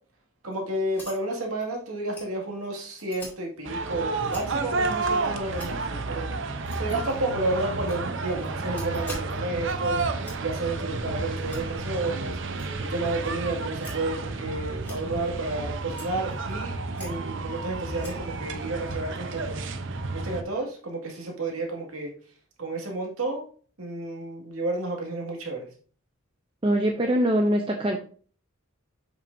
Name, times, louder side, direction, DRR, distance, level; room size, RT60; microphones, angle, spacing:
voice 1, 0.4-10.0 10.4-19.7 20.1-22.1 22.6-23.5 23.8-25.7, right 2 dB, 85° right, 0 dB, 2.1 m, -31 dB
sound 1, 0.9-1.2 1.6-1.7 2.1-2.3 2.6-2.7 2.9-3.3 4.2-4.4 4.8-5.0 5.5-5.7 6.6-7.5 7.8-9.3 9.7-9.8 10.2-10.4 10.8-11.0 11.4-11.6 12.5-12.7 13.2-13.3 13.8-13.9 14.8-15.4 15.9-16.5 16.9-17.2 17.9-18.1, left 1 dB, 10° left, 2.5 m, -43 dB
sound 2, 3.6-20.4, right 3 dB, 60° right, 0.7 m, -31 dB
voice 2, 26.6-28.0, equal, 25° right, 3 dB, 0.5 m, -23 dB
7.5 x 5.8 x 2.7 m, 0.43 s
head